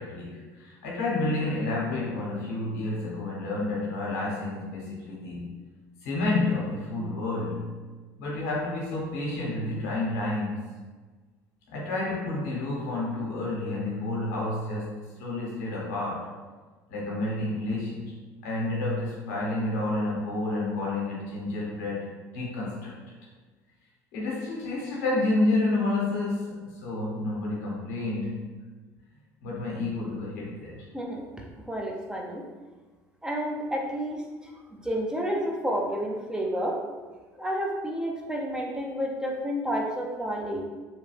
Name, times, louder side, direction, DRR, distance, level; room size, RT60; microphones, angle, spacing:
voice 1, 0.0-5.5 6.0-7.7 8.2-10.6 11.7-16.3 16.9-18.1 18.4-22.9 24.1-28.4 29.4-30.9, left 2 dB, 85° left, -4 dB, 1.0 m, -30 dB
voice 2, 30.9-32.4 33.2-36.7 37.4-40.7, equal, 10° right, -1 dB, 0.6 m, -30 dB
3.1 x 2.2 x 3.3 m, 1.4 s
hypercardioid pair, 75°, 9 cm